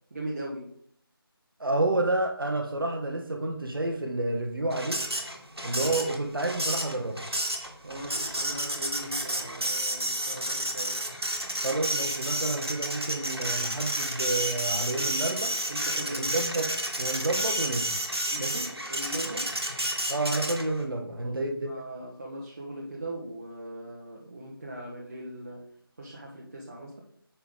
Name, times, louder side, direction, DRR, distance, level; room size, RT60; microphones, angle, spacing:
voice 1, 0.1-0.7 7.8-11.0 15.7-16.3 18.3-19.6 21.2-21.4 21.7-25.7 26.0-27.0, right 1 dB, 35° right, -2 dB, 1.1 m, -39 dB
voice 2, 1.6-5.0 5.6-7.2 11.6-15.6 16.2-16.7 17.0-17.9 18.4-18.7 20.1-21.8, right 2 dB, 60° right, 2 dB, 1.0 m, -29 dB
Printer, 4.7-20.8, right 1 dB, 90° right, 1.7 m, -31 dB
7.3 x 5.7 x 3.6 m, 0.65 s
figure-of-eight pair, 165°, 13 cm